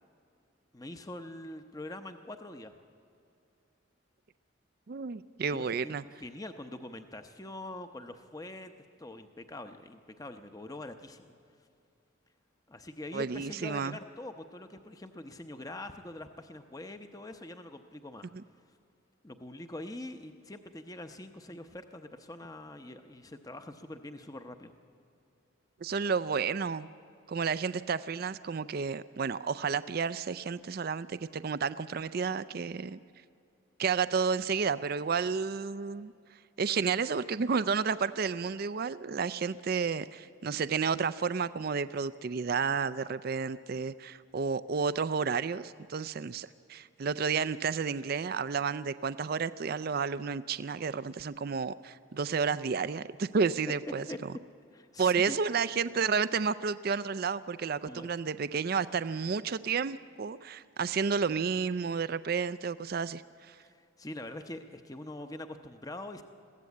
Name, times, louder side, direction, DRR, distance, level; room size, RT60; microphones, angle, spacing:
voice 1, 0.7-2.7 5.5-8.7 9.0-11.3 12.7-18.3 19.2-24.7 54.1-54.2 54.7-55.4 57.8-58.1 63.6-66.2, left 1 dB, 15° left, 8 dB, 0.8 m, -44 dB
voice 2, 4.9-6.0 13.1-14.0 25.8-26.9 27.3-33.0 33.8-36.1 36.6-54.1 55.0-63.6, right 5 dB, 45° right, 15 dB, 0.4 m, -31 dB
22.0 x 15.5 x 8.5 m, 2.6 s
head